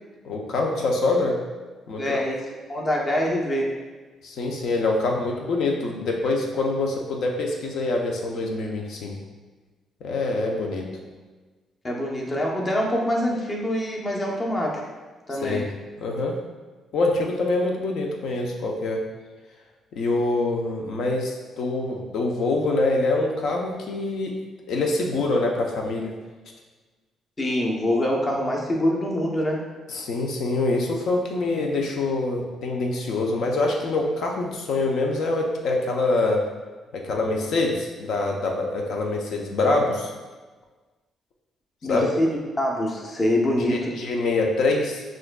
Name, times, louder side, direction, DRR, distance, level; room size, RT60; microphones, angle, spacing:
voice 1, 0.2-1.4 1.9-2.2 4.2-9.2 10.0-11.0 15.3-15.7 16.0-16.4 16.9-19.0 19.9-24.3 24.7-26.1 29.9-36.4 36.9-40.1 41.9-42.1 43.7-45.0, left 2 dB, 75° left, 0 dB, 0.6 m, -25 dB
voice 2, 2.0-3.7 11.8-14.8 15.3-15.6 27.4-29.6 41.8-44.0, left 1 dB, 30° left, -1 dB, 0.7 m, -25 dB
6.0 x 2.5 x 2.2 m, 1.3 s
cardioid pair, 90°, 0 cm